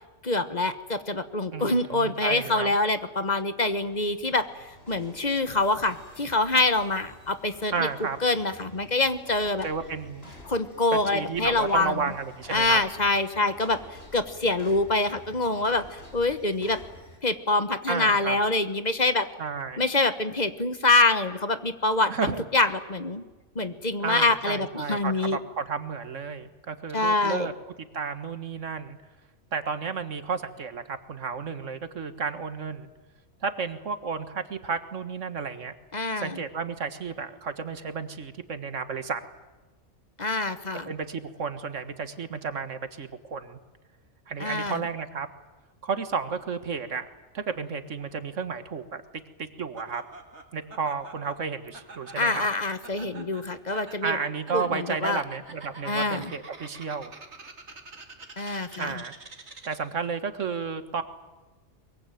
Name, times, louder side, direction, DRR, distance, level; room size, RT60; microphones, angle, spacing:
voice 1, 0.2-7.9 8.2-9.7 10.5-11.9 12.5-16.8 17.2-19.3 19.8-22.1 22.5-23.2 23.5-25.4 26.9-27.5 35.9-36.4 40.2-40.9 44.4-44.8 52.2-54.2 54.5-55.2 55.8-56.3 58.4-59.0, left 2 dB, 35° left, 11 dB, 1.3 m, -25 dB
voice 2, 1.5-2.8 7.7-8.2 9.6-10.3 10.9-12.8 17.9-18.4 19.4-19.8 22.1-22.4 24.0-27.5 27.9-29.0 29.5-32.9 33.4-35.7 36.2-39.2 40.9-43.6 44.3-45.3 45.8-47.1 47.3-49.0 49.4-50.0 50.5-52.5 54.0-57.1 58.8-59.1 59.7-61.0, right 5 dB, 85° right, 10 dB, 1.9 m, -32 dB
sound 1, 3.6-17.2, left 1 dB, 55° left, 5.2 m, -50 dB
Laughter, 49.8-60.0, right 3 dB, 70° right, 2.4 m, -47 dB
23.0 x 22.5 x 9.2 m, 1.2 s
omnidirectional pair, 1.2 m